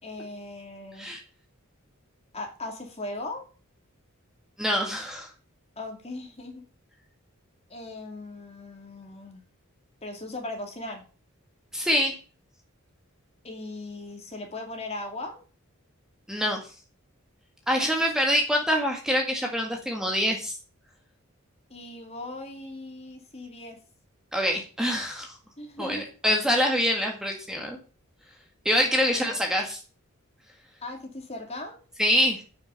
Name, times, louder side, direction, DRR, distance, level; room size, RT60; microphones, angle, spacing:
voice 1, 0.0-1.1 2.3-3.5 5.8-6.6 7.7-9.4 10.0-11.0 13.4-15.4 17.8-17.9 21.7-23.8 25.6-26.1 29.1-29.5 30.8-31.8, left 2 dB, 30° left, 2 dB, 2.5 m, -38 dB
voice 2, 4.6-5.3 11.7-12.1 16.3-16.6 17.7-20.6 24.3-25.4 25.8-27.8 28.6-29.8 32.0-32.4, equal, 5° right, 1 dB, 1.7 m, -25 dB
8.2 x 6.4 x 8.0 m, 0.37 s
head